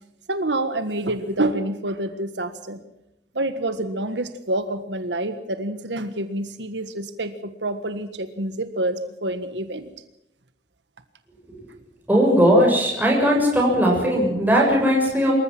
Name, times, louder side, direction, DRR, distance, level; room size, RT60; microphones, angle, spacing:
voice 1, 0.3-2.8 3.3-9.9, right 1 dB, 90° right, 10 dB, 1.6 m, -27 dB
voice 2, 12.1-15.3, equal, 10° right, -2 dB, 7.1 m, -18 dB
26.0 x 14.5 x 7.5 m, 0.85 s
head